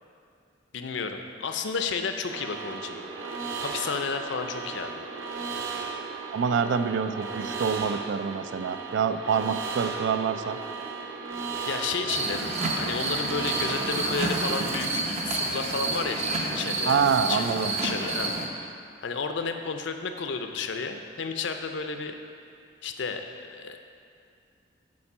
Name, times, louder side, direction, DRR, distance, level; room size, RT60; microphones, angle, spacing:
voice 1, 0.7-3.0 3.6-4.9 11.7-17.0 17.3-17.4 17.7-18.7 19.0-22.2 22.8-23.8, left 5 dB, 65° left, 6 dB, 0.5 m, -32 dB
sound 1, 2.3-14.9, right 5 dB, 85° right, 0.9 m, -36 dB
voice 2, 6.3-10.6 16.9-17.7, right 6 dB, 60° right, 10 dB, 0.3 m, -26 dB
sound 2, 12.1-18.5, right 2 dB, 35° right, 0.6 m, -29 dB
8.6 x 4.3 x 5.5 m, 2.4 s
head